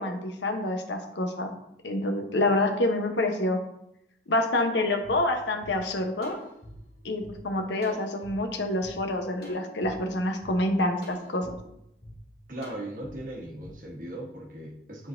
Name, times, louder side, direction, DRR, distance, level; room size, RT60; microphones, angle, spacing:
voice 1, 0.0-1.5 1.8-3.6 4.3-6.4 7.0-11.5, left 1 dB, 85° left, 4 dB, 0.9 m, -27 dB
sound 1, 5.0-5.1 5.6-5.7 6.2-7.3 7.8-8.3 8.8-8.9 9.4-9.9 10.4-10.5 11.0-11.5 12.0-12.2 12.6-13.1 13.6-13.7, equal, 55° left, 2.3 m, -46 dB
voice 2, 12.5-15.1, right 1 dB, 50° right, -1 dB, 1.2 m, -38 dB
9.9 x 3.9 x 2.6 m, 0.79 s
head